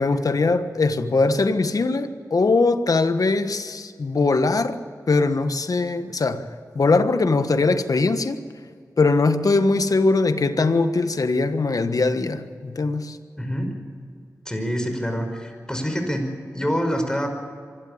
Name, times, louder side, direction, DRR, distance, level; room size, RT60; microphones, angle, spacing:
voice 1, 0.0-4.8 5.1-6.5 6.7-8.4 9.0-13.2, left 3 dB, 60° left, 1.4 m, -21 dB
voice 2, 13.4-13.8 14.5-17.3, equal, 10° left, 5.4 m, -26 dB
25.5 x 12.5 x 8.6 m
cardioid pair, 45°, 7 cm